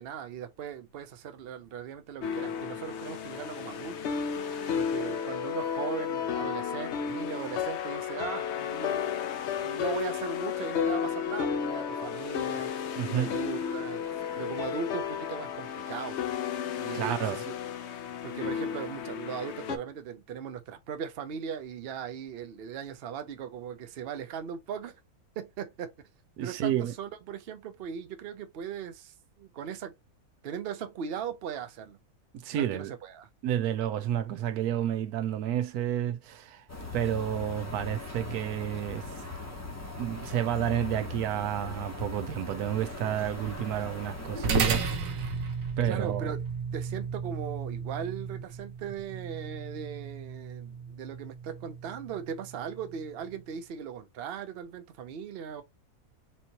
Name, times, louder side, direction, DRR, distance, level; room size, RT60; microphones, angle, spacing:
voice 1, 0.0-9.0 9.6-16.2 16.7-17.6 17.8-25.0 25.4-25.9 26.4-29.9 30.4-32.0 32.5-33.3 45.8-46.4 46.7-55.6, right 8 dB, 55° right, 0.7 m, -39 dB
Final Fantasy Style Loop, 2.2-19.8, left 8 dB, 65° left, 0.7 m, -33 dB
voice 2, 13.0-13.3 16.9-17.4 26.4-26.9 32.3-32.9 33.4-36.7 36.9-39.2 40.0-45.3 45.8-46.3, right 11 dB, 85° right, 1.1 m, -30 dB
sound 1, 36.7-44.8, left 3 dB, 15° left, 0.7 m, -40 dB
sound 2, 44.4-53.1, right 5 dB, 70° right, 1.2 m, -34 dB
4.4 x 2.8 x 2.8 m
omnidirectional pair, 1.6 m